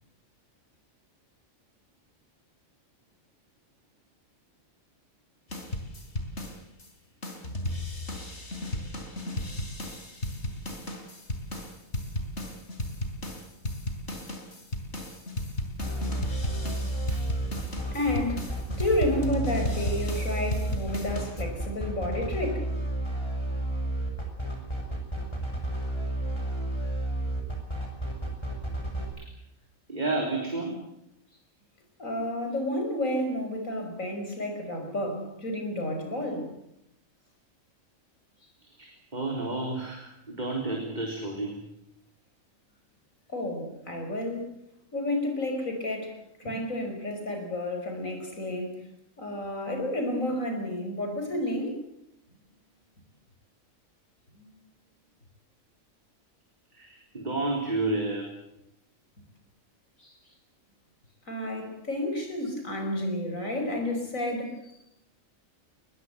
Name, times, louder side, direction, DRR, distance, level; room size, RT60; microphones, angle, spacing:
sound 1, 5.5-6.9 7.2-21.4, left 1 dB, 55° left, 3.8 m, -35 dB
sound 2, 15.8-29.0, right 1 dB, 20° left, 6.2 m, -31 dB
voice 1, 17.9-18.5 18.8-22.7 32.0-36.5 43.3-44.5 44.9-48.8 49.2-51.8 54.4-54.5 60.0-60.2 61.3-64.6, left 1 dB, 80° left, 5 dB, 6.0 m, -31 dB
voice 2, 29.9-30.8 38.8-41.6 56.7-58.3, right 2 dB, 35° right, 1 dB, 4.1 m, -31 dB
22.0 x 21.5 x 8.1 m, 0.79 s
omnidirectional pair, 1.4 m